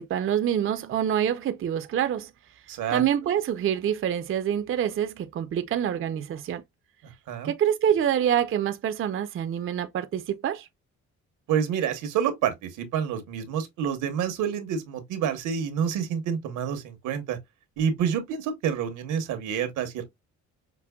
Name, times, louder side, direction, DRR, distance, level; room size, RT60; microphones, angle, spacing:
voice 1, 0.0-2.3 2.9-6.6 7.4-10.7, right 9 dB, 45° right, 0.5 m, -26 dB
voice 2, 2.7-3.0 7.0-7.5 11.5-17.4 17.8-20.0, right 8 dB, 90° right, 1.1 m, -28 dB
5.9 x 2.1 x 2.2 m
cardioid pair, 90°, 30 cm